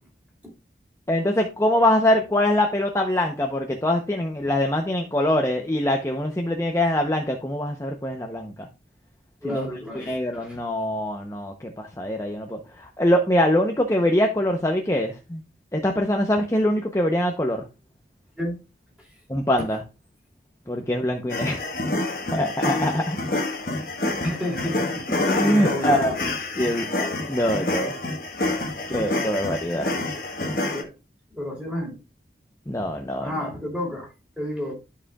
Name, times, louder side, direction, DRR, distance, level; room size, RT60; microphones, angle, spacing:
voice 1, 1.1-8.5 9.5-9.7 9.9-15.4 15.7-17.7 19.3-19.8 20.7-21.6 22.3-23.2 25.1-26.2 26.6-27.9 28.9-29.9 32.7-33.5, left 1 dB, 15° left, 0.7 m, -23 dB
voice 2, 9.4-10.6 18.4-18.6 19.6-19.7 24.2-26.2 30.7-30.9 31.3-32.0 33.2-34.7, left 1 dB, 5° right, 2.9 m, -31 dB
sound 1, 21.3-30.8, left 2 dB, 55° left, 1.3 m, -27 dB
12.5 x 4.9 x 2.3 m
head